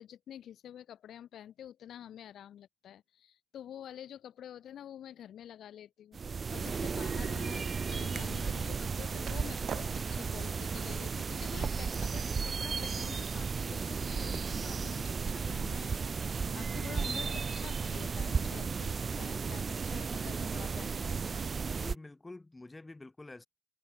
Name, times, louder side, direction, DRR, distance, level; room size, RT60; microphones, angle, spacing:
voice 1, 0.0-21.4, left 10 dB, 70° left, 4.1 m, -49 dB
sound 1, 6.1-21.9, right 5 dB, 35° right, 0.8 m, -34 dB
Skateboard, 7.2-12.4, right 8 dB, 60° right, 3.2 m, -50 dB
voice 2, 21.7-23.5, left 2 dB, 15° left, 6.7 m, -47 dB
cardioid pair, 110°, 0 cm